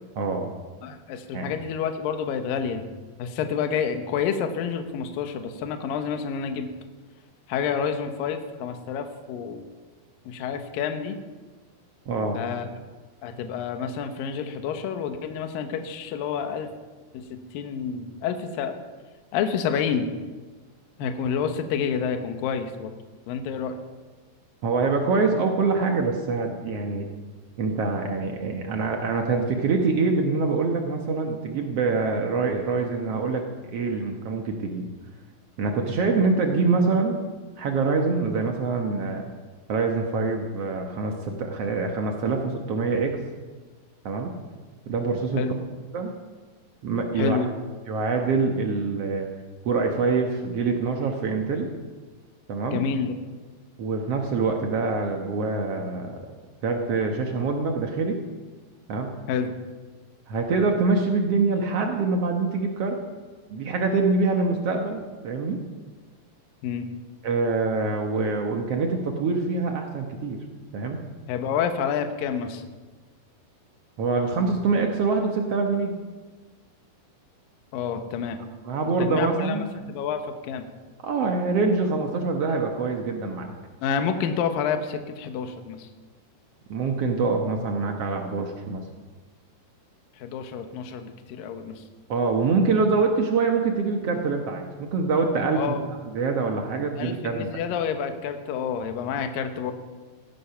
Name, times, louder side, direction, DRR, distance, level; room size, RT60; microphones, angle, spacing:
voice 1, 0.2-0.5 1.3-1.5 12.1-12.4 24.6-27.1 27.6-34.9 35.6-37.2 37.6-39.2 39.7-43.2 44.0-44.3 44.9-45.4 45.9-46.1 46.8-47.4 47.9-49.3 49.6-51.7 52.5-52.8 53.8-56.1 56.6-58.2 58.9-59.1 60.3-63.0 63.5-65.6 67.2-70.4 70.7-71.0 74.0-75.9 78.6-79.7 81.0-83.5 86.7-88.8 92.1-95.7 96.1-97.6, right 4 dB, 90° right, 2 dB, 1.3 m, -25 dB
voice 2, 0.8-2.9 3.2-6.7 7.5-9.6 10.3-11.2 12.3-12.7 13.2-16.7 17.1-18.8 19.3-20.1 21.0-22.9 23.3-23.8 45.4-45.6 47.2-47.5 52.7-53.1 59.3-59.5 66.6-66.9 71.3-72.6 77.7-78.4 79.0-79.6 79.9-80.7 83.8-85.9 90.2-91.8 95.5-95.9 97.0-99.7, left 7 dB, 70° left, 6 dB, 2.5 m, -29 dB
17.0 x 14.0 x 5.8 m, 1.3 s
omnidirectional pair, 4.9 m